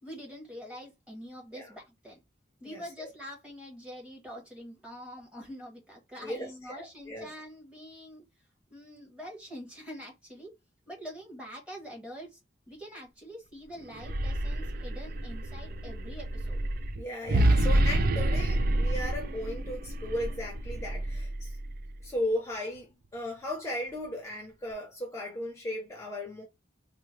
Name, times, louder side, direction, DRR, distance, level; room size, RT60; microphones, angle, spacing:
voice 1, 0.0-2.2 2.6-8.2 8.7-10.5 10.9-12.4 12.7-16.6, equal, 5° right, 1.2 m, -45 dB
voice 2, 2.6-3.1 6.2-7.3 17.0-21.6 22.0-22.9 23.1-26.4, left 1 dB, 15° left, 0.7 m, -36 dB
sound 1, 13.9-22.0, right 1 dB, 50° right, 0.4 m, -28 dB
3.6 x 2.1 x 3.1 m
head